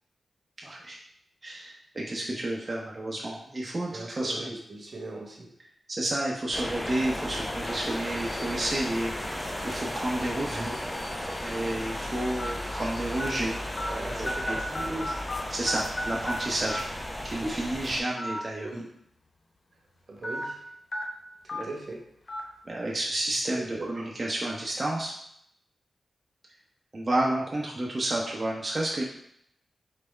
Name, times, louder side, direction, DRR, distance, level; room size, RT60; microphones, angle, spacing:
voice 1, 0.6-1.0 1.4-4.5 5.9-10.8 11.4-13.5 14.2-14.6 15.5-16.9 17.2-18.7 21.6-21.7 22.7-25.1 26.9-29.0, right 1 dB, 40° right, -3 dB, 0.8 m, -31 dB
voice 2, 3.9-5.5 10.5-10.7 13.9-15.5 17.4-17.5 18.6-18.9 20.1-20.6 21.5-22.0 23.7-24.1, right 2 dB, 60° right, 0 dB, 1.0 m, -38 dB
sound 1, 6.5-18.0, left 1 dB, 20° left, 0.6 m, -35 dB
sound 2, 10.3-10.5 11.2-11.3 12.4-12.5 13.2-13.3 13.8-13.9 14.3-15.4 15.7-16.4 16.7-16.8 18.1-18.4 18.8-18.9 20.2-20.4 20.9-21.0 21.5-21.6 22.3-22.4, left 1 dB, 55° left, 0.9 m, -33 dB
4.1 x 3.4 x 3.3 m, 0.72 s
cardioid pair, 40°, 0 cm